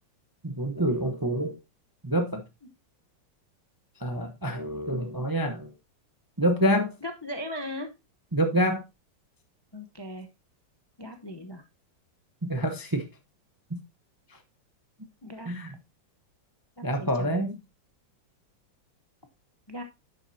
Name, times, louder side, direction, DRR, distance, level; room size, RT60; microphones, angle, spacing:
voice 1, 0.4-1.6 2.0-2.4 4.0-5.7 6.4-6.9 8.3-8.8 12.4-13.0 13.7-13.8 15.5-15.7 16.8-17.6, equal, 20° right, 0.5 m, -27 dB
voice 2, 7.0-7.9 9.7-10.3 11.0-11.6 15.2-15.5 16.8-17.5 19.7-19.8, left 1 dB, 30° left, 0.4 m, -38 dB
10.5 x 7.3 x 2.7 m
omnidirectional pair, 2.1 m